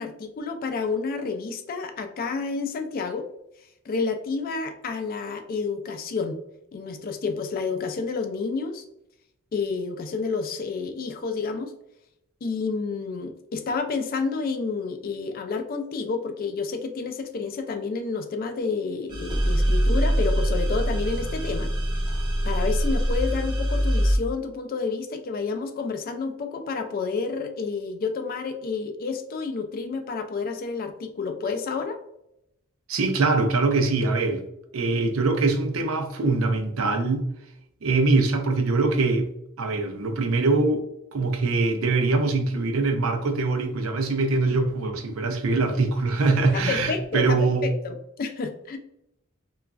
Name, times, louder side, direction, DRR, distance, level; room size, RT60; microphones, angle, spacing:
voice 1, 0.0-3.3 3.8-6.4 6.7-8.8 9.5-11.7 12.4-21.7 22.4-32.0 46.5-48.8, left 4 dB, 45° left, 7 dB, 0.3 m, -30 dB
sound 1, 19.1-24.2, equal, 20° right, 0.5 m, -23 dB
voice 2, 32.9-34.4 34.7-37.2 37.8-39.3 39.6-40.8 41.1-47.7, right 3 dB, 70° right, 5 dB, 0.5 m, -23 dB
sound 2, 45.9-47.6, right 1 dB, 50° right, 0.8 m, -41 dB
3.0 x 2.3 x 2.3 m, 0.81 s
head